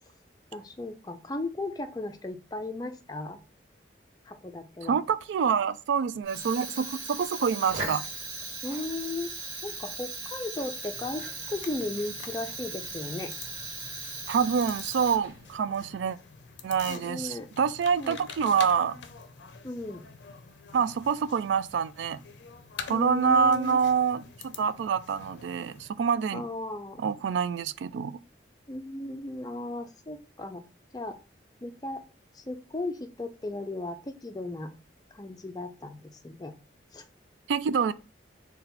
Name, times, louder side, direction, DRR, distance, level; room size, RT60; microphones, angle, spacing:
voice 1, 0.5-3.4 4.3-5.0 8.6-13.3 16.9-17.5 18.0-18.2 19.6-20.0 22.9-23.8 26.3-27.0 28.7-30.6 30.9-31.2 31.6-32.0 32.3-34.7 35.1-36.5 36.9-37.0, left 2 dB, 20° left, 0.4 m, -36 dB
voice 2, 4.8-8.0 14.3-16.2 16.6-19.0 20.7-22.2 22.8-26.4 27.0-28.2 37.5-37.9, right 6 dB, 80° right, 0.3 m, -26 dB
Fire, 6.2-15.6, right 2 dB, 35° right, 1.5 m, -38 dB
sound 1, 10.9-25.9, left 6 dB, 75° left, 0.5 m, -46 dB
4.0 x 2.3 x 4.0 m
head